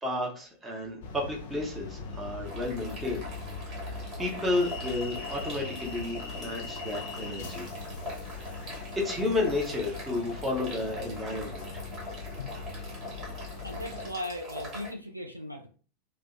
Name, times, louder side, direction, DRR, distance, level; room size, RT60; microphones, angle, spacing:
voice 1, 0.0-3.3 4.2-7.7 8.3-11.8, left 2 dB, 15° right, -1 dB, 0.7 m, -32 dB
sound 1, 1.0-14.1, left 4 dB, 55° left, 0.4 m, -40 dB
sound 2, 2.4-14.9, equal, 30° right, 1.1 m, -43 dB
voice 2, 13.6-15.7, left 1 dB, 90° right, 2 dB, 0.4 m, -38 dB
2.6 x 2.0 x 2.5 m, 0.39 s
figure-of-eight pair, 90°, 0 cm